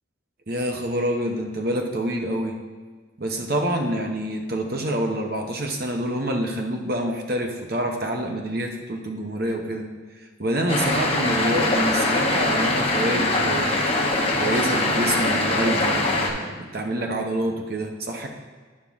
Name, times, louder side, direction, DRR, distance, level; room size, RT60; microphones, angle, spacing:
voice 1, 0.5-2.6 3.2-9.9 10.4-13.8 14.4-18.3, right 1 dB, 50° right, 3 dB, 0.9 m, -27 dB
sound 1, 10.7-16.3, left 2 dB, 30° left, 0.9 m, -22 dB
9.8 x 5.6 x 3.6 m, 1.5 s
head